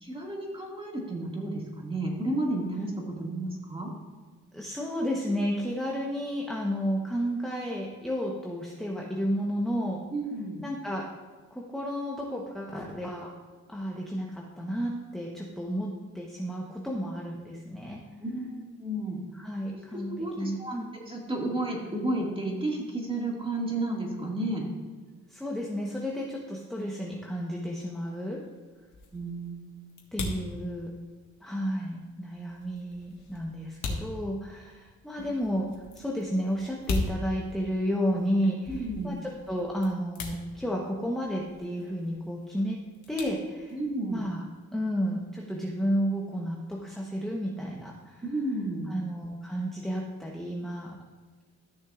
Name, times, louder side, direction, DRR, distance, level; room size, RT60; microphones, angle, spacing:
voice 1, 0.0-2.9 3.2-3.9 10.1-10.6 18.2-19.2 19.9-24.6 29.1-29.6 38.7-39.2 43.7-44.2 48.2-48.9, right 1 dB, 15° right, -1 dB, 2.1 m, -32 dB
voice 2, 4.5-10.0 10.6-11.0 11.5-13.3 13.7-18.0 19.3-20.9 25.3-28.4 30.1-30.9 31.4-35.7 35.9-42.8 43.1-43.8 44.1-44.4 44.7-48.2 48.9-51.0, equal, ahead, -2 dB, 1.0 m, -32 dB
sound 1, 27.6-44.1, left 3 dB, 70° left, 1.5 m, -40 dB
13.5 x 6.5 x 2.5 m, 1.4 s
cardioid pair, 90°, 30 cm